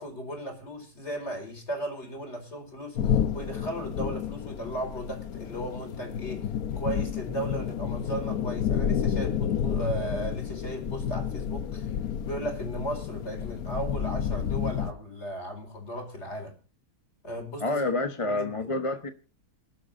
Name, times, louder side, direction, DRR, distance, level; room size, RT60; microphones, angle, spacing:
voice 1, 0.0-6.5 6.8-12.0 12.2-16.5 17.2-17.9 18.2-18.7, right 1 dB, 40° left, 4.9 m, -36 dB
sound 1, 2.9-14.9, left 8 dB, 65° left, 1.3 m, -30 dB
voice 2, 17.6-19.1, left 2 dB, 25° left, 1.0 m, -28 dB
27.0 x 11.5 x 2.6 m
omnidirectional pair, 1.7 m